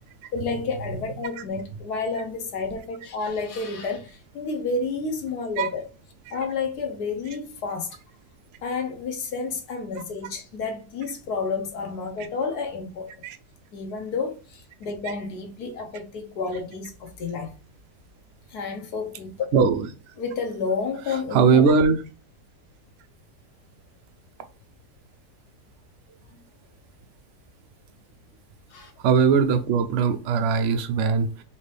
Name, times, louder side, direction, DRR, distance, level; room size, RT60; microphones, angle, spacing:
voice 1, 0.3-5.8 6.3-8.0 8.6-13.1 13.7-17.5 18.5-19.4 20.2-21.6 28.7-28.9, left 4 dB, 70° left, 1.4 m, -30 dB
voice 2, 19.5-20.1 21.3-22.0 29.0-31.4, right 5 dB, 75° right, 0.6 m, -20 dB
4.2 x 2.9 x 3.2 m
omnidirectional pair, 1.8 m